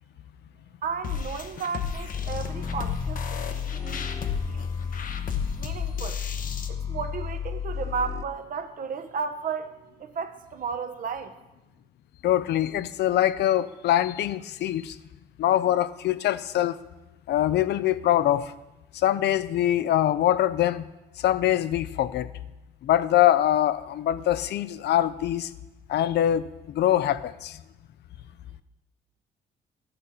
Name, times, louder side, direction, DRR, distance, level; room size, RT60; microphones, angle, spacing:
voice 1, 0.8-4.1 4.5-4.7 5.6-6.2 6.7-11.3, right 5 dB, 50° right, 8 dB, 0.9 m, -34 dB
sound 1, 1.0-6.7, left 6 dB, 55° left, 0.9 m, -34 dB
sound 2, 2.1-8.2, left 7 dB, 20° left, 0.3 m, -32 dB
voice 2, 12.2-14.9 15.4-16.8 17.3-18.5 19.0-20.8 21.2-22.3 22.8-25.5 25.9-26.4 26.7-27.6, left 12 dB, 75° left, 15 dB, 0.5 m, -23 dB
12.5 x 6.8 x 5.5 m, 1.0 s
cardioid pair, 120°, 17 cm